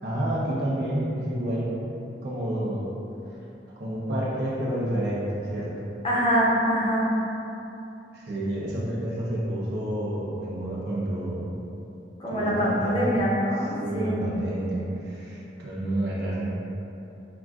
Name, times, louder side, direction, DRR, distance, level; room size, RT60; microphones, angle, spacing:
voice 1, 0.0-1.8 2.2-2.9 3.7-5.7 8.1-11.5 12.3-13.2 13.8-16.5, right 1 dB, 65° right, -6 dB, 0.8 m, -29 dB
voice 2, 6.0-7.1 12.2-14.3, equal, 30° left, -6 dB, 0.6 m, -24 dB
5.8 x 2.5 x 2.4 m, 2.9 s
head